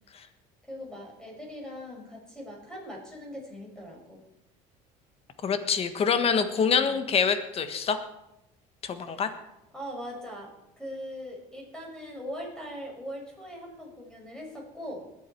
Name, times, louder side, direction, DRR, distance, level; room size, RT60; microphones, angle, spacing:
voice 1, 0.7-4.2 6.5-7.0 9.1-9.2 9.7-15.1, equal, 5° left, -1 dB, 5.5 m, -41 dB
voice 2, 5.4-8.0 8.8-9.3, left 6 dB, 40° left, 9 dB, 1.5 m, -25 dB
21.5 x 8.5 x 4.6 m, 0.89 s
cardioid pair, 110°, 15 cm